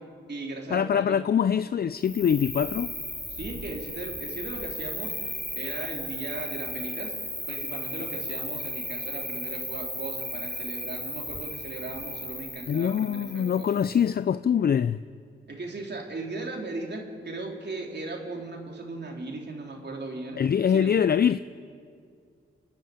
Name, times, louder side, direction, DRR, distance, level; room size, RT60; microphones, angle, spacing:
voice 1, 0.0-1.2 3.3-7.1 7.5-13.8 15.5-20.4 20.7-20.9, right 2 dB, 55° right, 3.4 m, -37 dB
voice 2, 0.7-2.9 12.7-15.0 20.4-21.4, left 8 dB, 50° left, 0.4 m, -24 dB
Cricket, 2.0-14.0, equal, 5° left, 3.5 m, -36 dB
26.0 x 10.5 x 9.8 m
cardioid pair, 60°, 21 cm